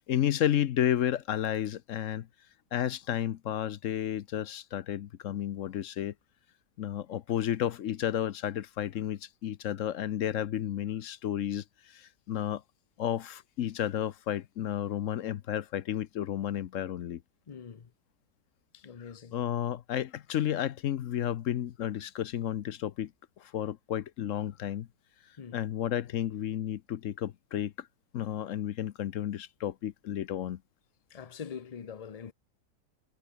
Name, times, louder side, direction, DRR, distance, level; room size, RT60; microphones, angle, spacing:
voice 1, 0.0-2.3 2.7-6.1 6.8-12.6 13.0-17.2 19.3-23.1 23.4-24.9 25.5-27.9 28.1-30.6, left 11 dB, 60° left, 0.9 m, -32 dB
voice 2, 17.5-17.9 18.7-19.4 25.4-25.6 31.1-32.3, left 7 dB, 40° left, 0.5 m, -43 dB
omnidirectional pair, 1.8 m